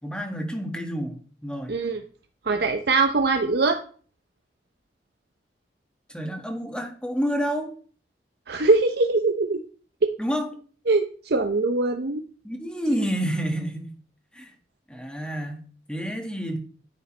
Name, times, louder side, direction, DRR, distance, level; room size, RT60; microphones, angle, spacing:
voice 1, 0.0-1.7 6.1-7.7 10.2-10.5 12.4-14.0 14.3-14.5 14.9-16.6, equal, 5° left, 3 dB, 1.8 m, -29 dB
voice 2, 1.7-2.0 2.5-3.8 8.5-9.6 10.0-10.1 10.9-12.2, right 3 dB, 65° right, 5 dB, 0.7 m, -22 dB
9.7 x 9.1 x 3.3 m, 0.43 s
head